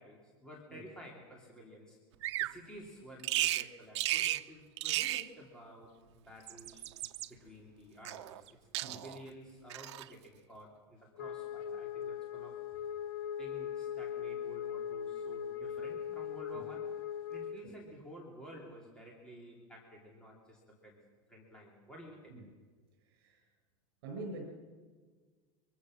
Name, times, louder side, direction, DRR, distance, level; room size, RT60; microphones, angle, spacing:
voice 1, 0.0-2.0 2.4-6.8 7.3-8.5 8.8-12.6 13.4-16.9 17.3-21.0 21.3-22.3, equal, 5° left, -3 dB, 2.8 m, -52 dB
Bird vocalization bird call bird song, 2.2-2.6 3.2-3.7 4.0-4.4 4.8-5.3 6.3-7.3 8.1-8.5 8.7-9.2 9.7-10.1, right 15 dB, 90° right, 0.8 m, -34 dB
Wind instrument woodwind instrument, 11.2-17.6, left 9 dB, 55° left, 2.0 m, -40 dB
voice 2, 23.1-23.4 24.0-24.4, right 2 dB, 60° right, 2 dB, 6.4 m, -45 dB
24.5 x 24.0 x 6.4 m, 1.5 s
supercardioid pair, 175°, 14 cm